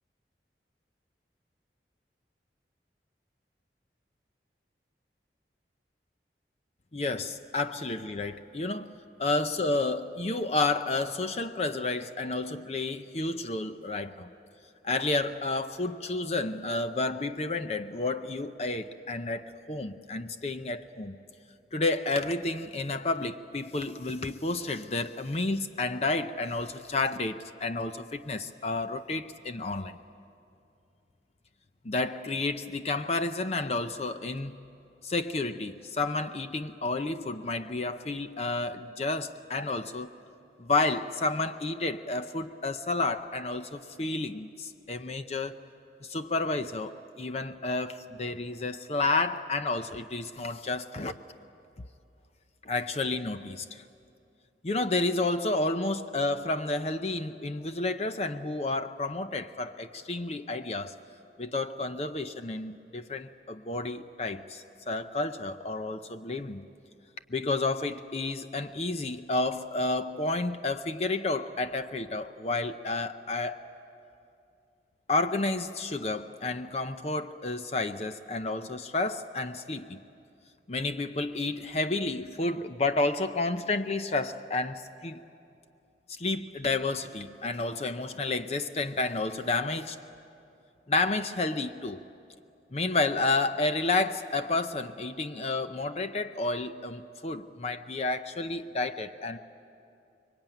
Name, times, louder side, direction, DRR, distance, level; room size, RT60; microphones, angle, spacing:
voice 1, 6.9-14.3 14.8-21.2 21.7-30.0 31.8-34.6 35.0-40.1 40.6-45.6 46.0-51.1 52.6-53.9 54.6-60.9 61.4-66.6 67.3-73.6 75.1-80.0 80.7-85.2 86.1-90.0 90.9-92.0 92.7-99.4, left 2 dB, 35° left, 0.6 m, -31 dB
25.5 x 22.5 x 9.1 m
head